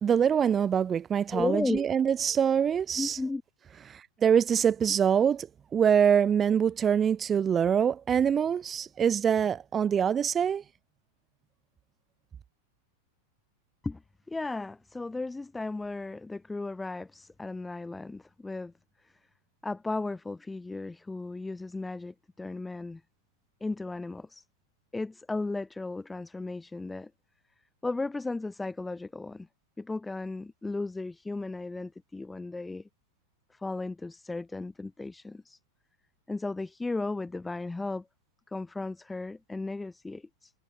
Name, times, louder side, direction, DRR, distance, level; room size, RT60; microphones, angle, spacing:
voice 1, 0.0-3.2 3.9-5.5 5.7-10.6, right 8 dB, 25° right, 0.6 m, -24 dB
voice 2, 1.3-1.9 3.0-3.4 13.8-14.0 14.3-18.7 19.0-19.1 19.6-23.0 23.6-24.4 24.9-27.1 27.8-29.5 29.8-32.9 33.5-35.6 36.3-38.1 38.5-40.5, left 3 dB, 10° left, 4.5 m, -35 dB
figure-of-eight pair, 90°, 0 cm